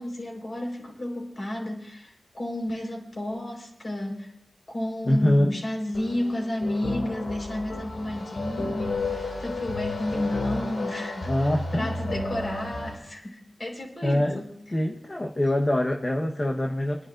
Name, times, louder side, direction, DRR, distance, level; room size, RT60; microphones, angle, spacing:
voice 1, 0.0-4.3 4.7-11.3 11.7-14.5, left 1 dB, 45° left, 0 dB, 4.6 m, -32 dB
voice 2, 5.0-5.6 11.3-11.9 14.0-14.4 14.7-17.1, left 1 dB, 30° left, 1 dB, 1.2 m, -24 dB
sound 1, 5.9-12.9, left 2 dB, 90° left, 2.8 m, -32 dB
27.5 x 10.5 x 2.6 m, 0.72 s
cardioid pair, 65°, 0 cm